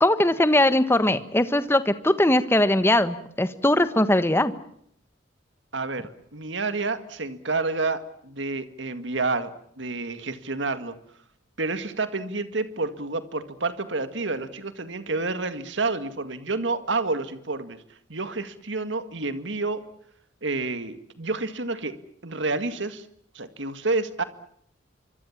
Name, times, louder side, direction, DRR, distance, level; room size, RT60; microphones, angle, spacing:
voice 1, 0.0-4.5, left 1 dB, 10° left, 12 dB, 1.4 m, -20 dB
voice 2, 5.7-10.9 11.6-17.8 18.1-19.8 20.4-21.9 22.2-23.1 23.3-24.2, right 3 dB, 65° right, 10 dB, 2.1 m, -29 dB
26.0 x 24.5 x 7.4 m, 0.67 s
head